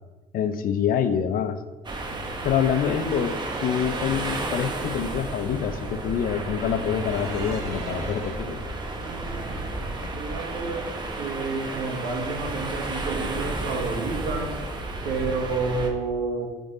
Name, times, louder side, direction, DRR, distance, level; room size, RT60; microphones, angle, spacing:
voice 1, 0.3-1.6 2.4-8.6, left 8 dB, 60° left, 11 dB, 0.5 m, -26 dB
sound 1, 1.8-15.9, right 2 dB, 25° right, 1.0 m, -32 dB
voice 2, 2.8-3.4 9.0-9.5 10.1-10.9 11.2-14.6 15.0-16.5, right 3 dB, 65° right, 1 dB, 1.6 m, -30 dB
sound 2, 3.1-8.4, right 3 dB, 50° right, 1.4 m, -43 dB
8.7 x 3.8 x 3.9 m, 1.3 s
cardioid pair, 110°, 17 cm